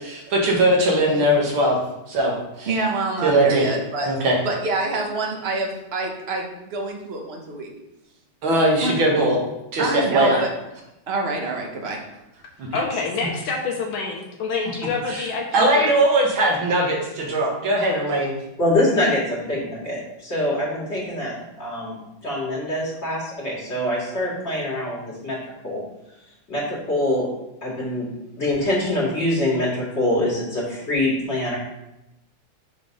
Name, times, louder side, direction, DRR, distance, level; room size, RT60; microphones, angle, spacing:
voice 1, 0.3-1.8 2.1-2.7 3.2-3.7 4.1-4.3 8.4-9.4 9.7-10.4 12.6-12.8 15.1-15.3 15.5-18.3, right 1 dB, 85° right, -1 dB, 2.2 m, -20 dB
voice 2, 2.7-4.1 4.4-7.7 8.8-8.9 9.8-10.5 11.1-12.0, right 2 dB, 40° right, 1 dB, 1.1 m, -26 dB
voice 3, 12.7-15.9, left 4 dB, 80° left, 0 dB, 1.6 m, -27 dB
voice 4, 18.6-21.9 22.2-25.4 25.6-25.8 26.5-27.3 27.6-28.1 28.4-31.6, left 1 dB, 35° left, -5 dB, 2.4 m, -24 dB
6.8 x 3.8 x 5.2 m, 0.90 s
omnidirectional pair, 2.1 m